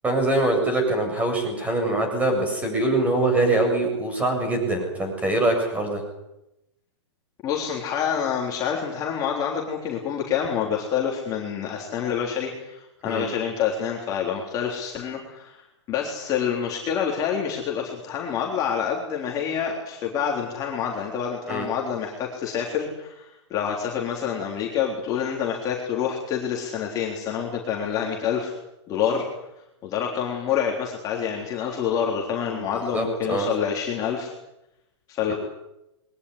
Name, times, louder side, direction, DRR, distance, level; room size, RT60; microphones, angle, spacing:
voice 1, 0.0-6.0 13.0-13.3 21.5-21.7 32.5-33.5, right 2 dB, 10° right, 4 dB, 7.8 m, -23 dB
voice 2, 7.4-15.6 15.9-28.5 28.9-29.2 29.8-34.3 35.1-35.3, left 8 dB, 25° left, -1 dB, 3.8 m, -27 dB
22.0 x 19.0 x 9.9 m, 0.89 s
hypercardioid pair, 155°, 15 cm